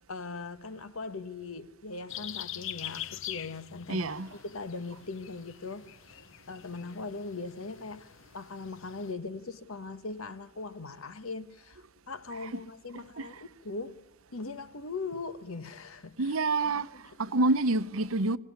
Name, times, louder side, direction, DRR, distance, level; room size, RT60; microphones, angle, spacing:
voice 1, 0.0-6.2 6.5-14.1 14.3-16.4 16.6-17.0, left 3 dB, 85° left, 1.3 m, -40 dB
sound 1, 2.1-9.1, left 11 dB, 65° left, 0.9 m, -44 dB
voice 2, 3.9-4.3 12.4-12.6 13.2-13.3 16.2-16.9 17.2-18.4, right 2 dB, 80° right, 0.9 m, -27 dB
26.5 x 18.0 x 9.6 m
head